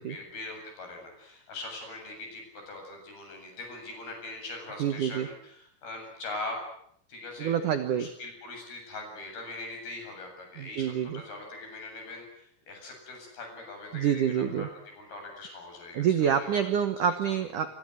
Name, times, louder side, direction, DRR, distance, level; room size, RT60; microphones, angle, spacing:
voice 1, 0.0-6.6 7.1-7.6 7.9-16.7 17.0-17.2, left 2 dB, 50° left, 3 dB, 9.7 m, -42 dB
voice 2, 4.8-5.3 7.4-8.1 10.6-11.2 13.9-14.7 15.9-17.8, right 8 dB, 80° right, 9 dB, 1.8 m, -27 dB
27.0 x 23.5 x 8.0 m, 0.68 s
omnidirectional pair, 5.8 m